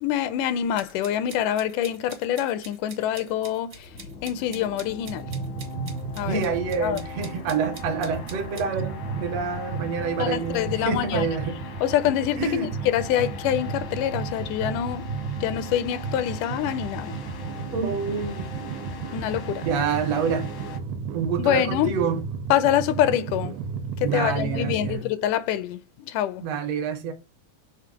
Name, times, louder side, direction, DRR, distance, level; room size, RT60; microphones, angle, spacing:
voice 1, 0.0-3.9 4.2-5.3 6.2-6.4 6.8-7.0 10.2-11.3 11.8-15.1 15.4-17.1 19.1-19.7 21.4-21.9 22.5-23.6 24.1-26.4, left 11 dB, 85° left, 2.1 m, -25 dB
sound 1, 0.8-8.7, right 5 dB, 55° right, 0.9 m, -45 dB
sound 2, 3.7-20.8, left 4 dB, 70° left, 1.1 m, -40 dB
sound 3, 5.1-25.0, right 5 dB, 85° right, 2.1 m, -34 dB
voice 2, 6.3-11.6 12.4-12.7 17.7-18.5 19.6-20.5 21.1-22.2 24.0-25.1 26.4-27.1, right 5 dB, 70° right, 1.7 m, -27 dB
5.9 x 3.4 x 4.8 m
omnidirectional pair, 3.6 m